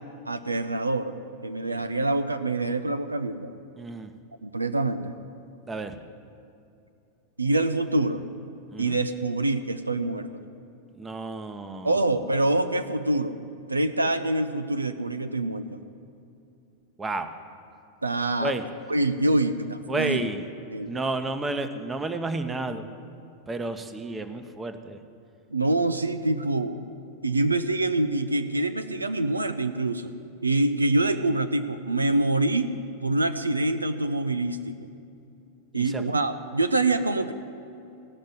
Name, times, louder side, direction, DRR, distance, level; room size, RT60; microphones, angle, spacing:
voice 1, 0.3-1.2 1.4-3.5 4.4-5.1 7.4-8.2 8.8-10.4 11.8-13.4 13.7-15.8 18.0-18.5 18.9-20.2 20.7-21.0 25.5-26.8 27.2-30.1 30.4-32.7 33.0-34.8 35.7-37.3, right 2 dB, 80° right, 11 dB, 0.5 m, -25 dB
voice 2, 3.8-4.1 5.7-6.0 8.7-9.0 11.0-11.9 17.0-17.3 18.4-18.6 19.9-20.4 20.9-22.9 23.5-25.0 35.7-36.0, right 2 dB, 15° right, 8 dB, 0.9 m, -31 dB
16.0 x 6.4 x 9.7 m, 2.7 s
figure-of-eight pair, 90°, 0 cm